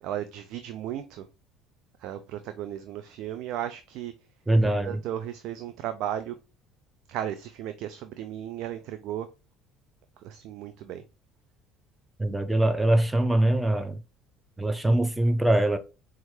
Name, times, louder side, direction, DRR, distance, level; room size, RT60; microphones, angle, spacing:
voice 1, 0.0-1.3 2.0-4.1 4.6-6.4 7.1-9.3 10.2-11.0, right 11 dB, 65° right, 0.3 m, -35 dB
voice 2, 4.5-5.0 12.2-14.0 14.6-15.8, right 1 dB, 10° right, 0.5 m, -23 dB
4.3 x 2.3 x 3.1 m
hypercardioid pair, 70°, 0 cm